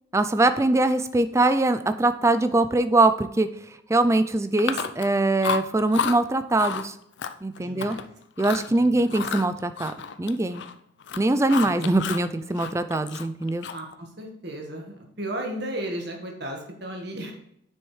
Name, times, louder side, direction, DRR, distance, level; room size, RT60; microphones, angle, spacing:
voice 1, 0.1-3.5 3.9-7.0 7.4-8.0 8.4-10.6 11.2-13.7, right 2 dB, 15° right, 11 dB, 0.3 m, -22 dB
Chewing mastication, 4.6-5.1 5.4-6.2 6.6-6.9 7.2-8.0 8.4-8.7 9.1-10.7 11.0-12.3 12.6-13.9, left 6 dB, 60° left, 0.4 m, -31 dB
voice 2, 7.6-8.0 8.8-9.0 11.6-11.9 13.7-17.3, right 1 dB, 55° right, 2 dB, 1.6 m, -35 dB
7.7 x 6.2 x 3.3 m, 0.74 s
head